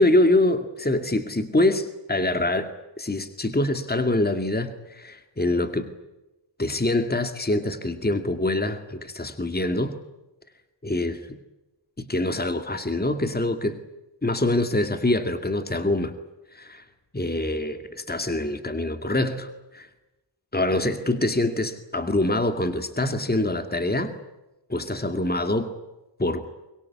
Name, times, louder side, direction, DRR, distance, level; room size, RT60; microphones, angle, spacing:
voice 1, 0.0-2.7 3.0-5.9 6.6-10.0 10.8-11.4 12.0-13.8 14.2-16.1 16.5-16.8 17.1-19.9 20.5-24.1 24.7-25.7 26.2-26.4, left 1 dB, 20° left, 7 dB, 2.3 m, -25 dB
24.5 x 23.0 x 8.5 m, 1.0 s
wide cardioid pair, 75°, 46 cm